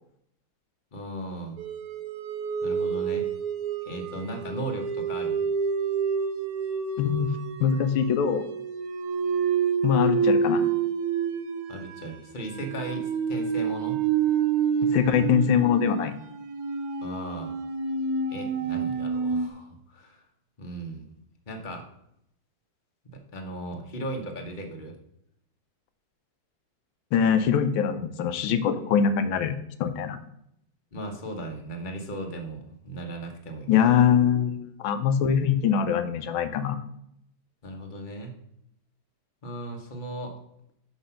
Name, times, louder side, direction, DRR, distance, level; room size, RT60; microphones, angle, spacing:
voice 1, 0.9-1.6 2.6-3.2 3.8-5.4 11.7-14.0 17.0-17.5 18.3-20.2 20.6-21.1 21.5-21.8 23.1-24.9 30.9-33.7 37.6-38.3 39.4-40.4, right 1 dB, 30° left, 3 dB, 1.1 m, -37 dB
sound 1, 1.6-19.5, right 5 dB, 65° right, 1.0 m, -28 dB
voice 2, 7.0-7.3 7.6-8.5 9.8-10.7 14.9-16.1 27.1-30.2 33.7-36.8, left 8 dB, 90° left, 10 dB, 1.5 m, -23 dB
6.0 x 5.7 x 5.6 m, 0.76 s
omnidirectional pair, 2.1 m